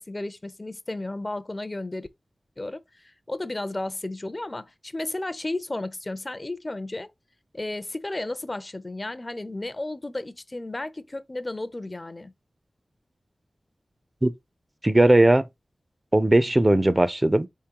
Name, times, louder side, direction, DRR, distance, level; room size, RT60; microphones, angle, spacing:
voice 1, 0.0-2.1 2.6-7.1 7.5-12.3, left 2 dB, 30° left, 0.5 m, -33 dB
voice 2, 14.8-15.4 16.1-17.5, right 1 dB, 25° right, 0.5 m, -18 dB
4.3 x 3.6 x 2.9 m
wide cardioid pair, 70°, 0 cm